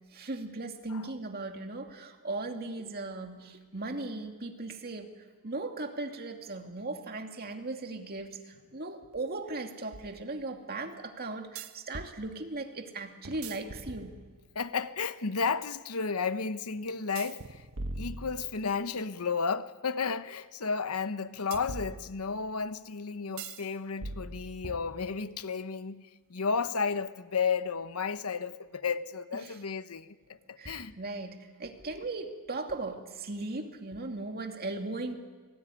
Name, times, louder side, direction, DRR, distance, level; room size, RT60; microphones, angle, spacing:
voice 1, 0.1-5.1 5.4-14.2 29.4-29.6 30.6-35.1, right 2 dB, 45° right, 2.5 m, -38 dB
sound 1, 9.1-9.2 11.6-12.2 13.2-14.6 17.2-18.9 21.5-22.5 23.4-23.7 24.0-25.4, right 2 dB, 75° right, 1.3 m, -42 dB
voice 2, 14.5-17.6 18.0-30.9, left 5 dB, 90° left, 1.0 m, -33 dB
29.0 x 19.0 x 9.9 m
head